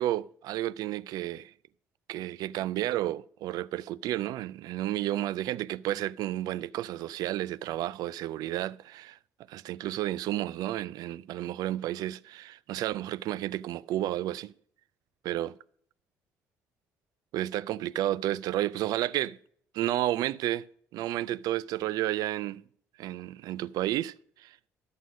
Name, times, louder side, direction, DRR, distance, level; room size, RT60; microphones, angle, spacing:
voice 1, 0.0-1.5 2.1-9.2 9.5-14.5 15.3-15.5 17.3-19.4 19.7-20.7 20.9-22.6 23.0-24.1 24.4-24.5, right 14 dB, 70° right, 0.4 m, -31 dB
11.5 x 7.9 x 5.1 m
supercardioid pair, 65°, 7 cm